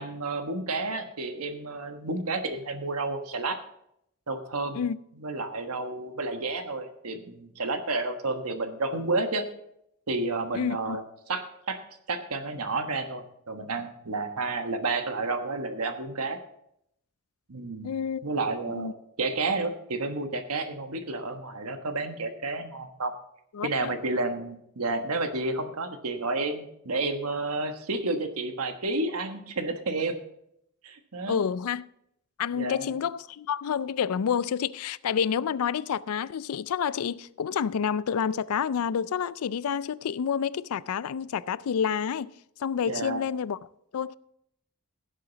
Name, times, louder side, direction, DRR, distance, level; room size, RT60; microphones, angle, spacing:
voice 1, 0.0-3.6 4.3-4.8 5.2-9.4 10.1-11.8 12.1-16.4 17.5-17.9 18.2-23.1 23.6-30.1 30.8-31.4 32.5-33.0 42.9-43.2, right 3 dB, 80° right, 1.3 m, -31 dB
voice 2, 10.5-11.0 17.8-18.2 18.7-18.9 23.5-24.0 31.3-31.8 32.4-42.3 42.6-43.6 43.9-44.2, left 7 dB, 75° left, 0.4 m, -29 dB
16.5 x 7.6 x 4.0 m
head